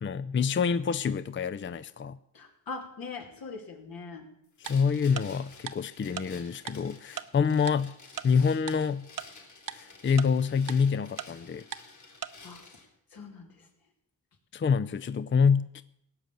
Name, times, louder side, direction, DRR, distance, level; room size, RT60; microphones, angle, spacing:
voice 1, 0.0-2.2 4.7-7.9 8.2-9.1 9.7-11.7 14.5-15.8, left 6 dB, 35° left, 14 dB, 0.5 m, -26 dB
voice 2, 2.3-4.3 12.4-12.6 13.1-13.7, left 4 dB, 75° left, 2 dB, 2.9 m, -41 dB
sound 1, 4.6-12.9, left 3 dB, 55° left, 4.1 m, -52 dB
Tick-tock, 4.7-4.8 5.2-5.3 5.7-5.8 6.2-6.3 6.7-6.8 7.2-7.3 7.7-7.8 8.2-8.3 8.7-8.8 9.2-9.3 9.7-9.8 10.2-10.3 10.7-10.8 11.2-11.3 11.7-11.8 12.2-12.3, right 9 dB, 65° right, 0.9 m, -35 dB
17.5 x 6.6 x 9.1 m, 0.77 s
cardioid pair, 75°, 35 cm